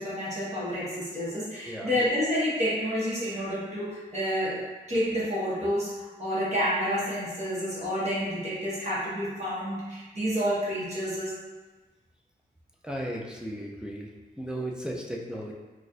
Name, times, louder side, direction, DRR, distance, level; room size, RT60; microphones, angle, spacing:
voice 1, 0.0-4.6 4.9-11.4, equal, 40° right, -8 dB, 1.2 m, -29 dB
voice 2, 1.6-2.0 12.8-14.1 14.4-15.5, right 1 dB, 5° right, -2 dB, 0.3 m, -35 dB
4.1 x 2.5 x 2.4 m, 1.2 s
wide cardioid pair, 145°, 17 cm